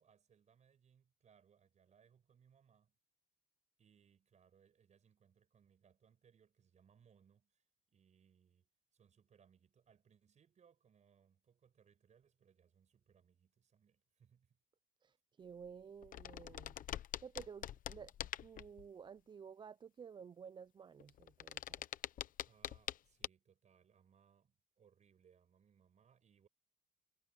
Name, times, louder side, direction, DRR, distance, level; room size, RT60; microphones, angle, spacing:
voice 1, 0.0-3.0 3.8-14.6 22.4-26.5, right 7 dB, 45° right, 6.5 m, -70 dB
voice 2, 15.0-16.8 17.2-21.8, right 7 dB, 25° right, 0.4 m, -53 dB
sound 1, 15.6-15.7 16.0-18.9 21.0-23.0 23.2-23.3, left 11 dB, 55° left, 0.9 m, -45 dB
cardioid pair, 110°, 17 cm